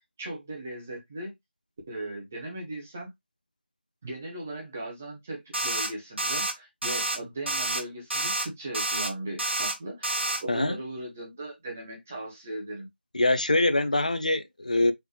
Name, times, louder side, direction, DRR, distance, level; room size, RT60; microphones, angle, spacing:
voice 1, 0.2-1.3 1.9-3.1 4.0-12.9, right 1 dB, 10° right, 0.7 m, -38 dB
sound 1, 5.5-5.9 6.2-6.5 6.8-7.2 7.5-7.8 8.1-8.5 8.7-9.1 9.4-9.8 10.0-10.4, right 2 dB, 80° right, 1.7 m, -28 dB
voice 2, 13.1-14.9, left 2 dB, 40° left, 0.5 m, -24 dB
4.6 x 3.3 x 3.1 m
figure-of-eight pair, 180°, 6 cm